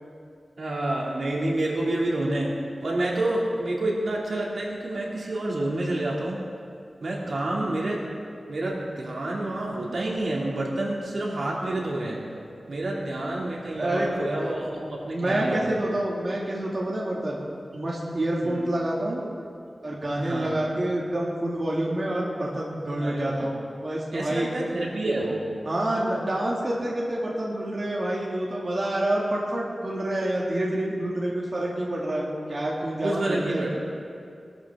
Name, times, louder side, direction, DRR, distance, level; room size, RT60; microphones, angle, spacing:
voice 1, 0.6-6.4 7.0-8.1 8.5-12.3 12.7-15.7 18.4-18.6 20.1-20.5 23.0-23.5 24.1-25.5 33.0-33.8, right 1 dB, 70° right, -3 dB, 2.7 m, -28 dB
voice 2, 7.3-7.6 13.8-14.2 15.1-17.4 17.7-19.2 19.8-24.5 25.6-33.6, right 1 dB, 45° right, -5 dB, 2.3 m, -28 dB
22.0 x 13.0 x 3.7 m, 2.4 s
wide cardioid pair, 100°, 0 cm